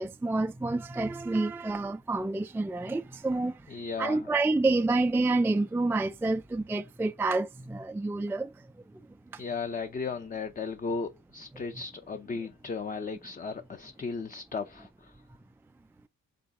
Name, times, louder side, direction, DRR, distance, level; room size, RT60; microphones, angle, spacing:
voice 1, 0.0-3.6 4.0-8.5 9.3-9.4 11.5-11.6, right 2 dB, 10° right, 0.3 m, -28 dB
voice 2, 3.7-4.3 9.4-15.1, left 4 dB, 25° left, 0.7 m, -35 dB
5.1 x 3.9 x 4.9 m
cardioid pair, 90°, 30 cm